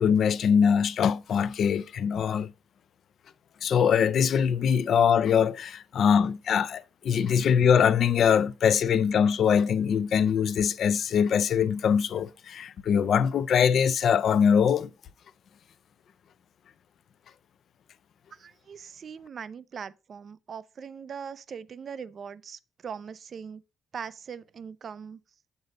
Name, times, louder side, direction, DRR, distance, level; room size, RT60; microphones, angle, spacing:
voice 1, 0.0-2.5 3.6-14.9, left 7 dB, 60° left, 0.5 m, -23 dB
voice 2, 18.4-23.6 23.9-25.2, right 7 dB, 50° right, 0.4 m, -41 dB
8.1 x 3.9 x 5.2 m
cardioid pair, 90°, 0 cm